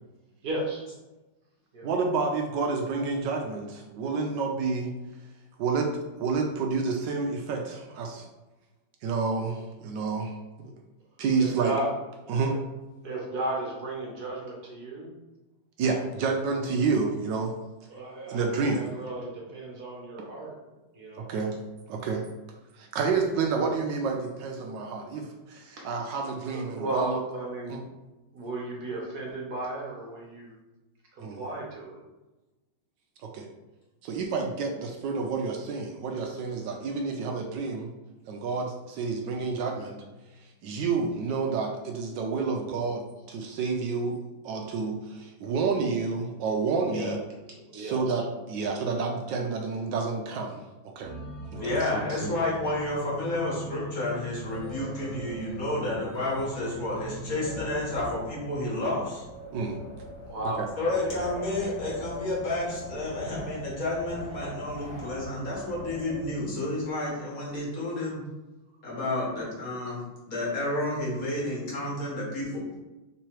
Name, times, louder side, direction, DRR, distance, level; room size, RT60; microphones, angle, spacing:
voice 1, 0.4-0.8 1.7-1.9 11.4-11.9 12.5-12.6 13.0-15.1 17.9-20.6 20.9-21.3 25.8-25.9 26.4-27.8 28.3-30.5 31.2-32.0 46.9-47.2 47.5-48.2 51.5-51.8 60.3-61.4, right 2 dB, 60° right, -3 dB, 1.4 m, -35 dB
voice 2, 1.8-4.9 5.6-8.3 9.0-10.7 11.2-11.7 12.3-12.6 15.8-17.5 18.3-18.9 21.2-21.5 21.9-22.2 22.7-27.2 27.7-27.8 31.2-31.4 33.2-33.5 34.0-37.9 38.3-40.0 40.4-47.2 47.7-50.6 51.0-51.1 51.5-52.3 59.5-59.8 60.4-60.7, right 4 dB, 75° right, 2 dB, 1.2 m, -29 dB
sound 1, 51.0-58.0, left 1 dB, 40° right, 1.4 m, -41 dB
voice 3, 51.6-59.2 60.8-68.2 68.8-70.0 70.3-72.7, left 1 dB, 50° left, -5 dB, 1.7 m, -30 dB
Wind, 54.2-66.8, left 1 dB, 30° left, 1.5 m, -42 dB
3.7 x 3.1 x 4.4 m, 1.1 s
omnidirectional pair, 2.1 m